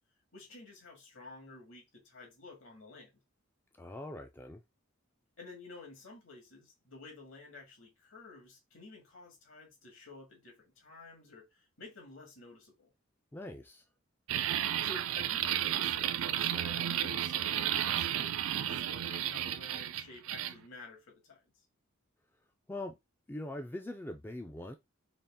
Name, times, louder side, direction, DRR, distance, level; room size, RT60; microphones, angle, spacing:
voice 1, 0.3-3.1 5.4-12.9 14.8-21.4, left 3 dB, 70° left, 1.8 m, -52 dB
voice 2, 3.8-4.6 13.3-13.8 22.7-23.0 23.3-24.8, left 1 dB, 10° left, 0.3 m, -42 dB
sound 1, 14.3-20.5, right 11 dB, 75° right, 0.3 m, -32 dB
4.0 x 2.4 x 3.5 m
head